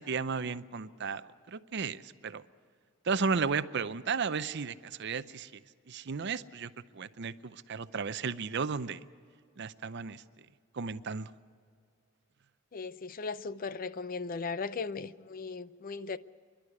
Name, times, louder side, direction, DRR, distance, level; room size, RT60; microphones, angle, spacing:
voice 1, 0.0-2.4 3.1-5.5 5.9-9.0 9.6-10.2 10.7-11.3, right 5 dB, 55° right, 0.6 m, -34 dB
voice 2, 12.7-16.2, left 4 dB, 45° left, 0.5 m, -37 dB
26.5 x 11.5 x 9.5 m
head